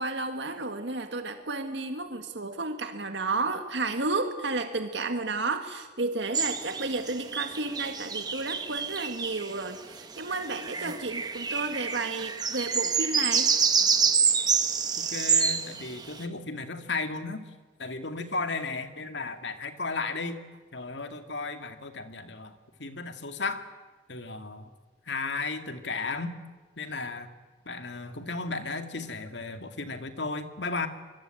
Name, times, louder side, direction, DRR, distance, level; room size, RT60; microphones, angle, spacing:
voice 1, 0.0-13.5, right 3 dB, 80° right, 7 dB, 1.8 m, -32 dB
sound 1, 6.3-9.5 10.3-16.2, right 6 dB, 20° right, 1.5 m, -27 dB
voice 2, 15.0-17.4 17.8-20.4 20.7-23.6 24.1-24.7 25.1-26.3 26.8-27.3 27.7-30.9, left 3 dB, 80° left, 8 dB, 2.2 m, -34 dB
26.0 x 22.5 x 9.0 m, 1.3 s
head